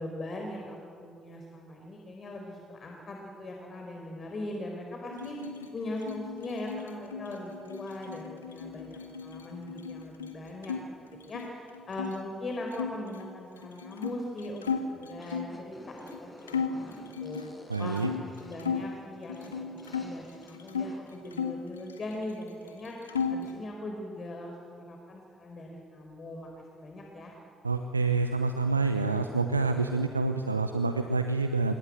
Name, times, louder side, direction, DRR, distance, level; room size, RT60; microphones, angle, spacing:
voice 1, 0.0-5.4 5.7-10.8 11.2-17.4 17.8-27.3, left 1 dB, 40° left, 1 dB, 4.6 m, -40 dB
sound 1, 5.1-10.8 11.1-12.1 12.7-15.6 16.1-16.2 16.5-18.9 19.3-20.9 21.3-22.4 22.7-23.6, left 6 dB, 85° left, 1.6 m, -36 dB
sound 2, 15.1-21.0, left 1 dB, 10° left, 7.7 m, -50 dB
voice 2, 17.7-18.1 27.6-31.7, right 3 dB, 85° right, 8 dB, 0.8 m, -27 dB
26.5 x 24.0 x 7.9 m, 2.5 s
figure-of-eight pair, 45°, 0 cm